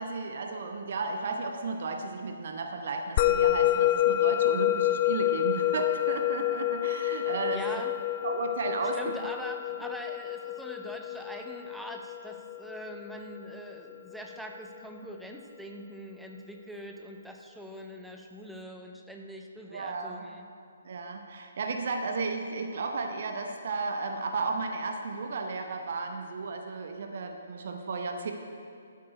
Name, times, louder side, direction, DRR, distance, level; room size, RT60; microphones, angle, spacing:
voice 1, 0.0-7.8 8.2-9.3 19.7-20.3 20.8-28.3, right 4 dB, 50° right, 5 dB, 0.8 m, -34 dB
Musical instrument, 3.2-13.8, left 13 dB, 30° left, 0.3 m, -28 dB
voice 2, 7.5-7.9 8.9-20.5, equal, ahead, 2 dB, 0.7 m, -43 dB
12.5 x 8.3 x 4.9 m, 2.4 s
figure-of-eight pair, 130°, 0 cm